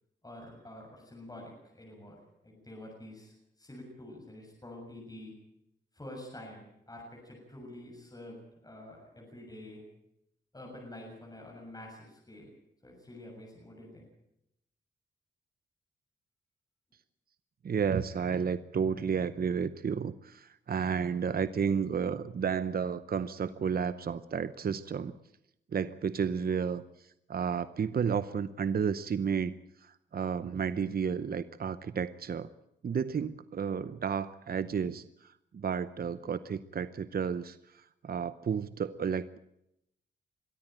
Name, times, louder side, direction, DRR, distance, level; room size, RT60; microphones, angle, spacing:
voice 1, 0.2-5.3 5.9-9.8 10.5-12.5 12.8-14.0, left 1 dB, 20° left, -2 dB, 7.1 m, -48 dB
voice 2, 17.6-25.1 25.7-29.5 29.8-32.5 32.8-39.4, right 6 dB, 50° right, 14 dB, 0.8 m, -32 dB
22.5 x 13.5 x 9.0 m, 0.81 s
cardioid pair, 70°, 19 cm